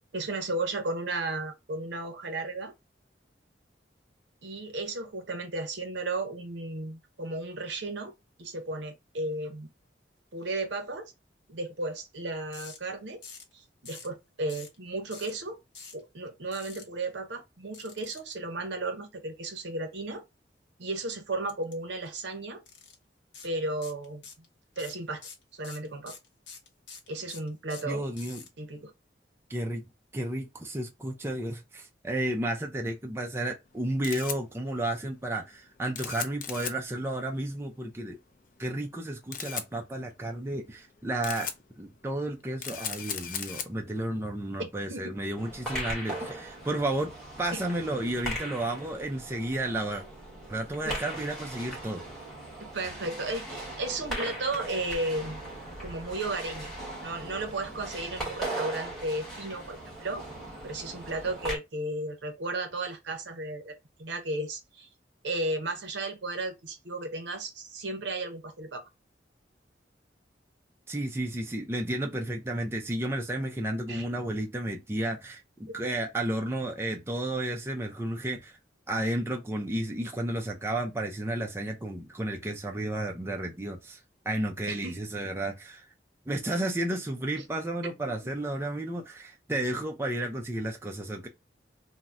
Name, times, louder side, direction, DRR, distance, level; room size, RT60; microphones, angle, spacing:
voice 1, 0.1-2.7 4.4-8.1 8.4-9.7 10.3-11.1 11.5-13.2 13.5-15.6 15.9-20.2 20.8-22.6 23.4-24.2 24.8-25.2 25.5-26.2 27.1-28.0 28.6-28.9 44.9-45.1 47.5-47.6 50.8-51.0 52.6-55.4 55.8-56.7 57.0-60.2 60.6-64.9 65.2-68.8 73.9-74.1 84.7-85.0, right 2 dB, 75° right, 0.7 m, -34 dB
sound 1, 12.5-12.8 13.2-13.5 13.9-14.1 14.5-14.8 15.1-15.3 15.7-16.0 16.5-16.8 17.7-18.3 21.5-21.7 22.1-22.2 22.7-23.0 23.3-23.5 23.8-24.5 24.8-28.5, left 5 dB, 80° left, 0.9 m, -46 dB
voice 2, 27.9-28.4 29.5-29.8 30.1-38.2 38.6-41.5 41.8-50.0 50.5-52.1 70.9-78.6 78.9-84.0 84.3-85.9 86.3-91.3, right 1 dB, 15° right, 0.4 m, -32 dB
Camera, 33.7-47.0, left 8 dB, 50° left, 0.4 m, -41 dB
sound 2, 45.4-61.6, right 1 dB, ahead, 1.1 m, -39 dB
2.7 x 2.0 x 3.5 m
head